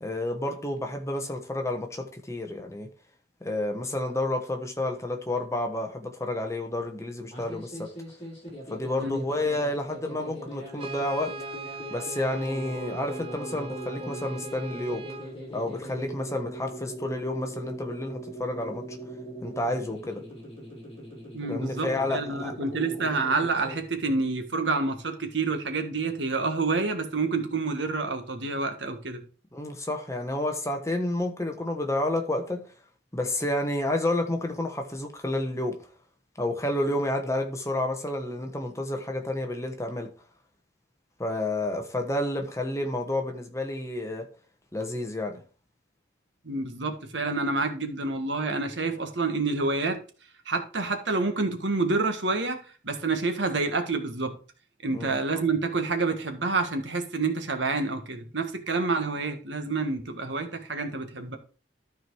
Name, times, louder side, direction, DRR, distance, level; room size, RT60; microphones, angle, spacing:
voice 1, 0.0-2.9 3.4-7.9 8.7-11.3 11.9-15.1 15.5-18.8 19.4-20.2 21.5-22.5 29.5-32.6 33.1-35.8 36.4-40.1 41.2-44.3 44.7-45.4 54.9-55.2, left 1 dB, 15° left, 1.3 m, -30 dB
sound 1, 7.2-23.8, right 1 dB, 30° left, 4.3 m, -40 dB
Brass instrument, 10.8-15.3, right 2 dB, 30° right, 0.6 m, -40 dB
voice 2, 21.3-29.2 46.5-50.0 50.5-52.6 52.8-54.4 54.8-61.4, right 3 dB, 70° right, 1.6 m, -28 dB
13.0 x 4.6 x 4.7 m
head